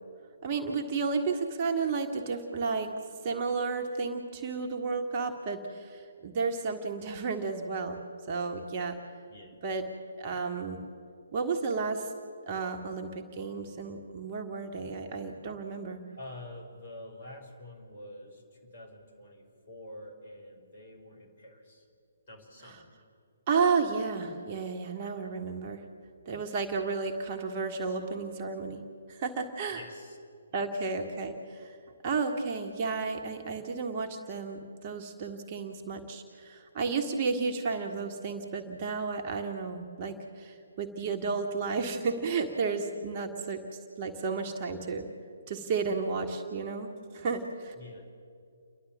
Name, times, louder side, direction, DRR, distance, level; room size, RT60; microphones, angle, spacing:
voice 1, 0.4-2.9 3.2-8.0 8.3-9.0 9.6-9.9 10.2-10.8 11.3-12.1 12.5-16.0 23.5-25.9 26.3-28.8 29.1-29.8 30.5-31.8 32.0-43.6 44.0-45.1 45.5-47.7, right 4 dB, 30° right, 3 dB, 1.6 m, -32 dB
voice 2, 9.3-9.6 16.2-21.9 22.3-22.9 29.7-30.2 30.5-30.7 47.7-48.1, left 1 dB, 45° left, 2 dB, 5.1 m, -47 dB
29.5 x 11.5 x 7.6 m, 2.4 s
figure-of-eight pair, 135°, 0 cm